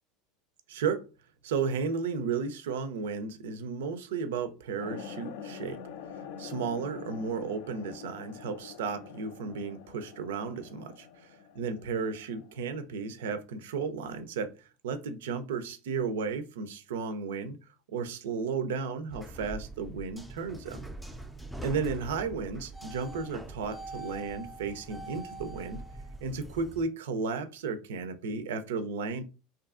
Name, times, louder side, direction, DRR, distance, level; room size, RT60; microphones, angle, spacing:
voice 1, 0.7-1.0 1.4-5.8 6.4-14.5 14.8-17.6 17.9-20.9 21.6-25.8 26.2-29.2, right 5 dB, 80° right, 0.4 m, -34 dB
sound 1, 4.8-12.7, left 7 dB, 70° left, 0.3 m, -45 dB
sound 2, 19.1-26.8, right 2 dB, 5° right, 0.4 m, -43 dB
2.6 x 2.4 x 2.3 m
hypercardioid pair, 90°, 0 cm